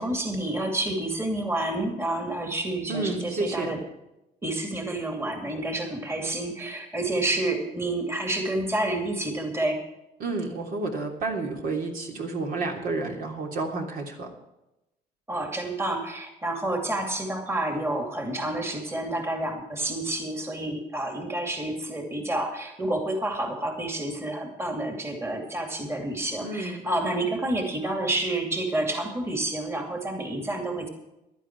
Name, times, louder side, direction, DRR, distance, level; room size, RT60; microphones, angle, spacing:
voice 1, 0.0-3.8 4.4-9.8 15.3-30.9, right 1 dB, 15° right, 3 dB, 2.6 m, -29 dB
voice 2, 2.9-3.8 10.2-14.3 26.4-26.9, right 3 dB, 55° right, 1 dB, 3.2 m, -30 dB
16.5 x 11.5 x 4.7 m, 0.91 s
cardioid pair, 110°, 17 cm